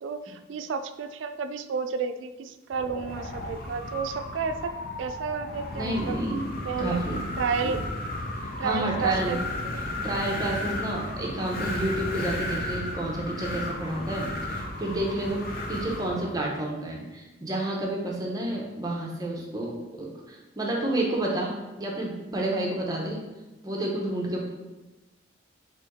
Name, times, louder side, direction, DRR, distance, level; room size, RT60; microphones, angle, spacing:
voice 1, 0.0-4.7 5.0-6.3 6.6-7.0 7.4-7.8 8.6-9.4 9.7-9.9, right 5 dB, 80° right, 10 dB, 0.3 m, -31 dB
Wind, 2.7-16.4, left 1 dB, 50° left, 0.5 m, -34 dB
voice 2, 5.8-6.4 6.8-7.3 7.6-7.7 8.4-9.4 10.0-21.5 21.8-23.2 23.6-24.4, right 1 dB, 20° right, -2 dB, 0.7 m, -30 dB
4.4 x 3.0 x 3.5 m, 1.1 s
head